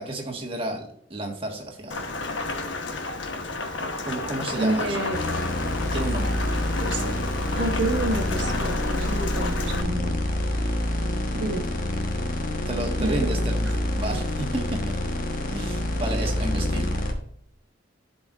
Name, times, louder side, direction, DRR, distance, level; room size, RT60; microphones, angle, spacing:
voice 1, 0.0-2.1 4.0-5.0 5.9-6.3 12.7-13.6 13.9-15.0 15.5-16.9, right 1 dB, 30° right, 1 dB, 1.5 m, -31 dB
Rain, 1.9-9.8, left 3 dB, 85° left, 1.1 m, -31 dB
voice 2, 4.5-5.2 6.7-7.1 7.6-10.1 11.3-11.7 13.0-13.7, right 2 dB, 75° right, 2 dB, 1.2 m, -29 dB
sound 1, 5.1-17.1, left 1 dB, 45° left, 1.2 m, -27 dB
11.5 x 5.2 x 2.5 m, 0.65 s
head